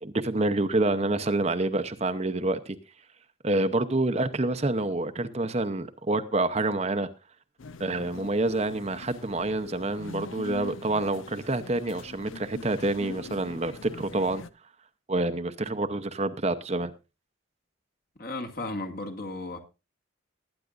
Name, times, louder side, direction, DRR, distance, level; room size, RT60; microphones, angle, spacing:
voice 1, 0.0-2.8 3.4-7.1 7.8-14.4 15.1-16.9, right 2 dB, 30° right, 0.7 m, -27 dB
sound 1, 7.6-14.5, left 4 dB, 80° left, 0.7 m, -43 dB
voice 2, 18.2-19.6, left 2 dB, 45° left, 2.0 m, -34 dB
20.0 x 9.9 x 2.5 m
head